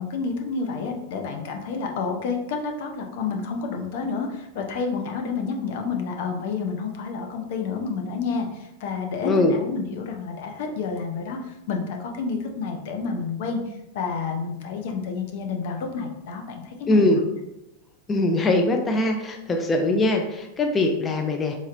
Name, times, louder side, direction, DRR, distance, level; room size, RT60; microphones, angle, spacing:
voice 1, 0.0-17.1, left 4 dB, 65° left, 3 dB, 0.6 m, -29 dB
voice 2, 9.2-9.5 16.9-17.2 18.1-21.6, left 2 dB, 25° left, 3 dB, 0.5 m, -21 dB
4.1 x 2.9 x 2.5 m, 0.87 s
hypercardioid pair, 100°, 0 cm